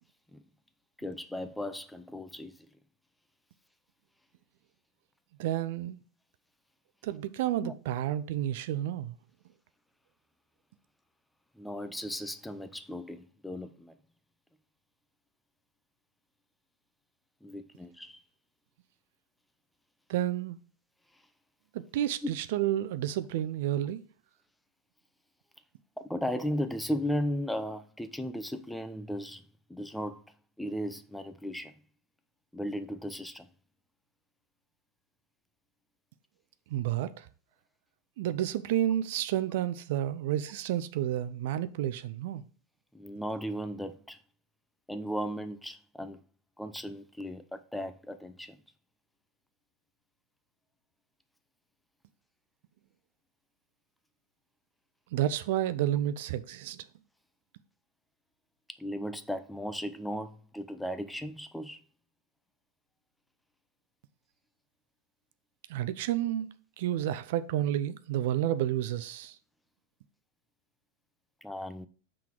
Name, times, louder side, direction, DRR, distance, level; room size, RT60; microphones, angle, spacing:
voice 1, 1.0-2.7 7.6-7.7 11.6-14.0 17.4-18.2 21.1-21.2 22.2-22.3 26.0-29.4 29.7-30.2 30.6-31.8 32.5-33.5 42.9-44.2 44.9-46.2 46.6-48.6 58.8-61.8 71.4-71.9, equal, 5° left, 0.5 m, -36 dB
voice 2, 5.4-6.0 7.0-9.2 20.1-20.6 21.7-24.0 36.7-37.3 38.2-42.4 55.1-56.9 65.7-66.5 66.8-69.4, right 12 dB, 65° right, 0.4 m, -30 dB
5.7 x 3.8 x 4.5 m
hypercardioid pair, 115°, 0 cm